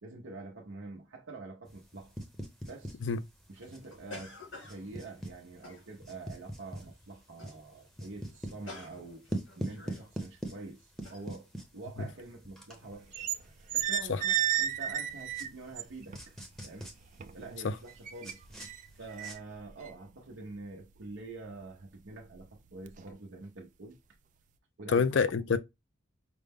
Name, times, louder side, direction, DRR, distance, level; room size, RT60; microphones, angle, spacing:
voice 1, 0.0-2.1 2.6-3.0 3.5-9.3 9.5-13.3 13.7-16.4 16.6-17.0 17.3-18.7 18.9-24.0 24.8-25.0, right 3 dB, 75° right, 0.7 m, -46 dB
sound 1, 1.7-19.3, right 1 dB, ahead, 0.7 m, -45 dB
sound 2, 3.6-6.3 6.8-7.0 7.3-7.6 7.9-8.0 8.3-10.1 10.5-10.6 11.0-11.2, left 2 dB, 80° left, 1.4 m, -50 dB
sound 3, 12.9-13.4 13.7-16.2 16.6-17.5 17.9-21.0 21.4-21.6 22.1-22.5 22.9-23.1, right 11 dB, 40° right, 0.3 m, -33 dB
voice 2, 24.9-25.6, left 5 dB, 65° left, 0.4 m, -27 dB
5.1 x 2.1 x 3.4 m
head